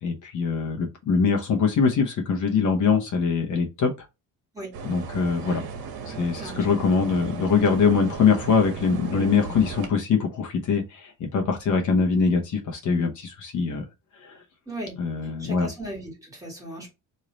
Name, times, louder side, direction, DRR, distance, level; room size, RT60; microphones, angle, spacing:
voice 1, 0.0-3.9 4.8-5.6 6.1-13.9 14.1-14.4 15.0-15.7, left 5 dB, 55° left, 1.0 m, -23 dB
sound 1, 4.7-9.9, right 5 dB, 80° right, 1.2 m, -37 dB
voice 2, 14.7-15.0 15.4-16.9, right 1 dB, 10° right, 1.8 m, -37 dB
3.2 x 2.8 x 3.8 m
cardioid pair, 150°, 36 cm